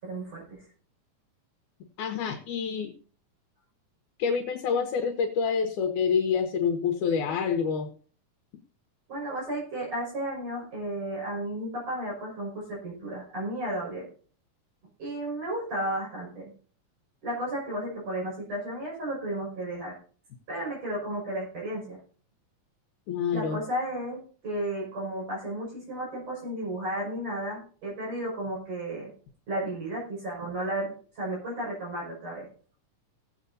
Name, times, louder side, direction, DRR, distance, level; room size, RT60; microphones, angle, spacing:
voice 1, 0.0-0.6 9.1-14.1 15.0-16.5 17.2-20.0 20.5-22.0 23.3-29.1 29.5-32.5, right 1 dB, 55° right, -4 dB, 6.9 m, -33 dB
voice 2, 2.0-2.9 4.2-7.9 23.1-23.6, left 6 dB, 75° left, 4 dB, 2.5 m, -27 dB
20.5 x 8.0 x 2.7 m, 0.43 s
omnidirectional pair, 3.7 m